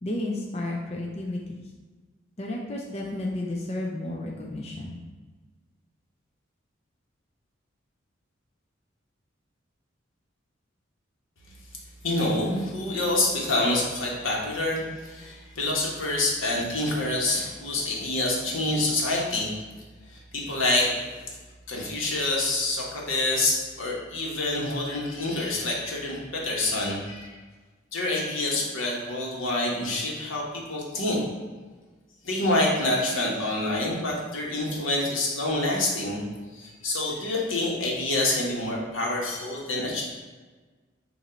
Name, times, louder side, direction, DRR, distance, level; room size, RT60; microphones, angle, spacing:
voice 1, 0.0-1.7 2.4-5.0, left 1 dB, 30° left, -2 dB, 0.6 m, -32 dB
voice 2, 12.0-19.5 20.1-20.9 21.7-27.4 27.9-31.2 32.2-36.2 36.5-40.0, left 2 dB, 85° left, -3 dB, 1.5 m, -27 dB
7.1 x 2.8 x 5.2 m, 1.3 s
head